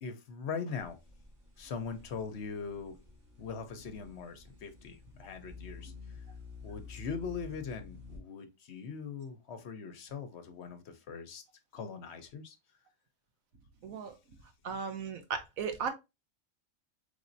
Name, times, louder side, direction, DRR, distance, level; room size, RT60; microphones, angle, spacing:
voice 1, 0.0-1.0 1.6-3.0 3.4-6.2 6.6-11.4 11.7-12.6, left 5 dB, 60° left, 1.0 m, -41 dB
sound 1, 0.8-8.2, left 4 dB, 35° right, 1.5 m, -50 dB
voice 2, 13.8-14.1 14.6-15.9, right 6 dB, 85° right, 1.2 m, -36 dB
4.1 x 3.4 x 2.6 m
omnidirectional pair, 1.4 m